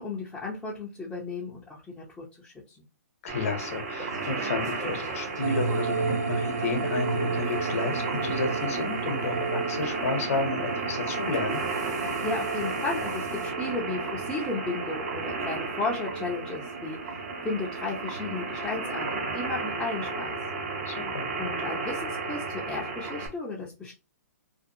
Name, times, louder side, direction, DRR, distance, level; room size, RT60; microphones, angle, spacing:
voice 1, 0.0-2.8 12.2-17.2 17.4-20.4 21.4-23.9, left 3 dB, 5° left, -7 dB, 0.6 m, -34 dB
voice 2, 3.2-11.6 20.9-21.3, left 4 dB, 55° left, 6 dB, 0.9 m, -32 dB
sound 1, 3.3-23.3, right 3 dB, 50° right, 0.9 m, -33 dB
sound 2, 3.7-13.5, right 2 dB, 85° right, 1.2 m, -47 dB
sound 3, 5.4-21.3, right 4 dB, 65° right, 0.4 m, -34 dB
2.6 x 2.3 x 2.6 m, 0.29 s
hypercardioid pair, 140°, 9 cm